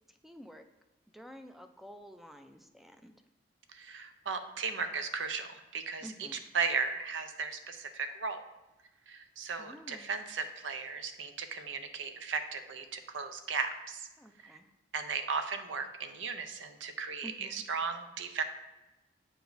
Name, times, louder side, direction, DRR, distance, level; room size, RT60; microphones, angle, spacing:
voice 1, 0.2-0.7 1.1-3.1 6.0-6.5 9.6-10.2 14.2-14.7 17.2-17.6, equal, ahead, 7 dB, 0.3 m, -50 dB
voice 2, 3.7-8.4 9.1-14.1 14.4-14.5 14.9-18.4, right 5 dB, 85° right, 8 dB, 0.6 m, -36 dB
7.9 x 4.9 x 2.6 m, 1.0 s
head